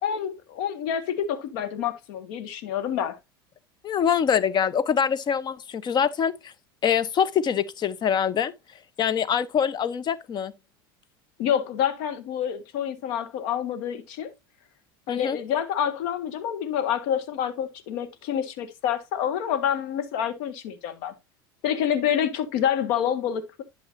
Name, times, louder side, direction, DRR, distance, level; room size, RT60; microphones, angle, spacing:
voice 1, 0.0-3.2 11.4-14.3 15.1-21.1 21.6-23.6, left 9 dB, 65° left, 1.7 m, -27 dB
voice 2, 3.8-6.5 6.8-8.5 9.0-10.5 15.1-15.4, left 8 dB, 35° left, 0.9 m, -24 dB
11.5 x 5.6 x 2.6 m
hypercardioid pair, 90°, 12 cm